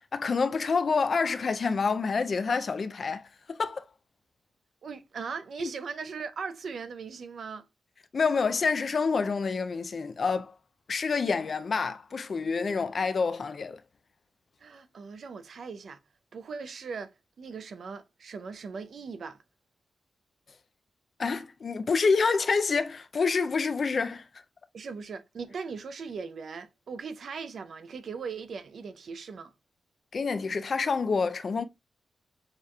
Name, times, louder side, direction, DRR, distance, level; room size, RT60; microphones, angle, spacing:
voice 1, 0.1-3.8 5.6-5.7 8.1-10.6 10.9-13.8 21.2-24.2 30.1-31.6, left 4 dB, 45° left, 0.3 m, -27 dB
voice 2, 4.8-7.7 14.6-16.0 16.3-19.4 24.7-29.5, right 5 dB, 65° right, 0.5 m, -39 dB
6.5 x 2.9 x 2.2 m
wide cardioid pair, 135°, 0 cm